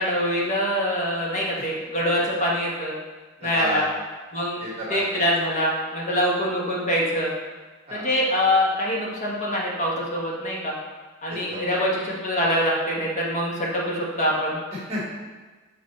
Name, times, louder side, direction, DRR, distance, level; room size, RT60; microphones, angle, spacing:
voice 1, 0.0-2.9 3.4-3.8 4.3-4.6 4.9-7.3 7.9-10.7 11.2-14.6, equal, 35° left, -4 dB, 1.3 m, -24 dB
voice 2, 3.4-3.9 4.6-5.1 7.9-8.1 11.3-11.8 14.9-15.1, right 1 dB, 30° right, -7 dB, 1.8 m, -31 dB
6.7 x 4.0 x 4.2 m, 1.3 s
head